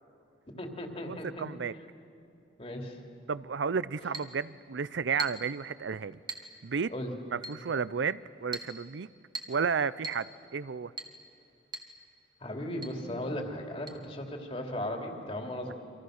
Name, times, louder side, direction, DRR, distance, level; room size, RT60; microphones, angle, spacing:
voice 1, 0.6-1.5 2.6-3.0 6.9-7.1 12.4-15.7, left 1 dB, 30° left, 2 dB, 2.8 m, -36 dB
voice 2, 1.4-1.7 3.3-6.2 6.6-6.9 7.3-9.1 9.5-10.9, right 6 dB, 85° right, 17 dB, 0.5 m, -32 dB
Chink clink, 4.1-4.4 5.2-5.5 6.3-6.5 7.4-7.6 8.5-8.8 9.3-9.6 10.0-10.3 11.0-11.2 11.7-11.9 12.2-12.3 12.8-13.0 13.9-14.0, right 2 dB, 25° right, 1.4 m, -39 dB
29.0 x 25.5 x 6.5 m, 2.6 s
head